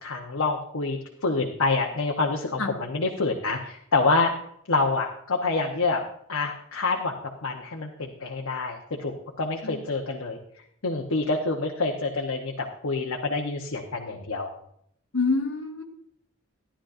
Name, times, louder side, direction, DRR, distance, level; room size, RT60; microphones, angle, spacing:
voice 1, 0.0-4.3 4.7-6.0 6.3-7.2 7.4-9.1 9.4-10.4 10.8-14.5, left 3 dB, 90° left, 0 dB, 1.0 m, -27 dB
voice 2, 15.1-15.8, left 3 dB, 65° left, 2 dB, 1.5 m, -26 dB
13.0 x 11.5 x 2.6 m, 0.69 s
head